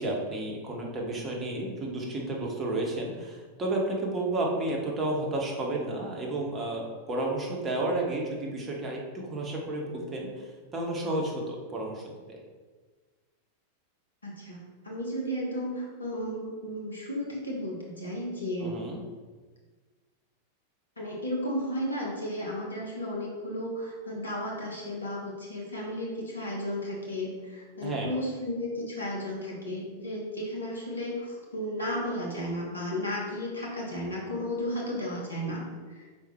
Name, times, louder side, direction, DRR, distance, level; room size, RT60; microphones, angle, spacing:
voice 1, 0.0-12.4 18.6-19.0 27.8-28.1, right 2 dB, 25° right, -1 dB, 1.4 m, -32 dB
voice 2, 14.2-18.8 21.0-35.6 36.0-36.1, equal, 75° left, -2 dB, 1.6 m, -34 dB
5.6 x 4.2 x 4.5 m, 1.4 s
figure-of-eight pair, 90°, 0 cm